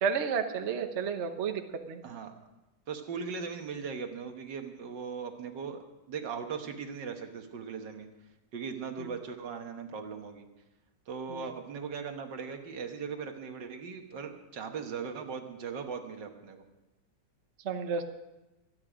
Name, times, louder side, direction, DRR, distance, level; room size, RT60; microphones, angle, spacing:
voice 1, 0.0-1.6 1.9-2.0 11.3-11.4 17.6-18.0, right 6 dB, 45° right, 6 dB, 1.1 m, -31 dB
voice 2, 2.9-8.1 8.5-10.5 11.1-16.6, right 6 dB, 75° right, 5 dB, 2.0 m, -39 dB
25.0 x 9.7 x 5.0 m, 1.0 s
omnidirectional pair, 1.9 m